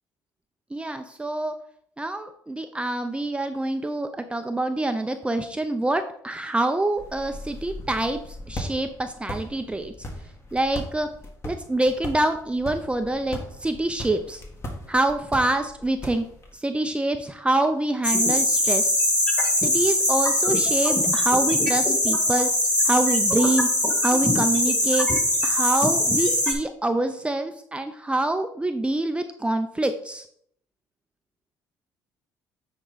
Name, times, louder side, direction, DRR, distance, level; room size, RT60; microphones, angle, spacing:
voice 1, 0.7-1.6 2.0-9.9 10.5-11.1 11.4-14.4 14.9-16.2 16.5-18.9 19.5-22.5 22.8-23.7 24.0-25.1 25.4-30.2, right 2 dB, 15° right, 7 dB, 0.6 m, -26 dB
sound 1, 7.0-16.5, left 1 dB, 35° left, 1.8 m, -38 dB
sound 2, 18.0-26.5, left 1 dB, 15° left, 2.1 m, -22 dB
9.1 x 4.5 x 4.1 m, 0.65 s
supercardioid pair, 85°, 8 cm